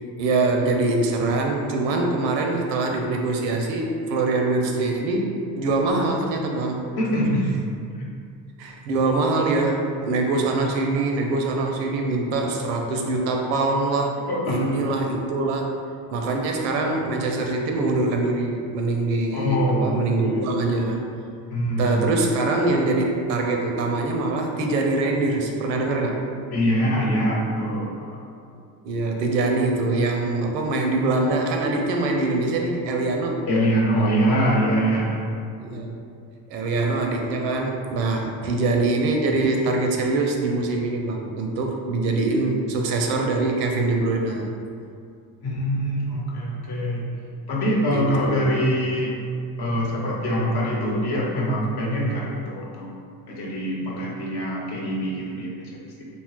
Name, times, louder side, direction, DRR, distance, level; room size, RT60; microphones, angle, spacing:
voice 1, 0.2-6.8 8.6-14.1 14.5-15.7 16.1-21.0 21.8-26.2 28.8-33.5 35.6-35.9 36.5-44.5 47.9-48.5, right 2 dB, 85° right, 2 dB, 0.5 m, -23 dB
voice 2, 7.0-7.6 8.0-8.1 14.3-14.8 19.3-20.5 21.5-22.1 26.5-28.2 33.5-35.3 45.4-47.1 47.5-49.2 49.6-52.9 53.3-56.1, equal, 50° left, -3 dB, 0.9 m, -24 dB
2.8 x 2.2 x 3.1 m, 2.4 s
hypercardioid pair, 65°, 49 cm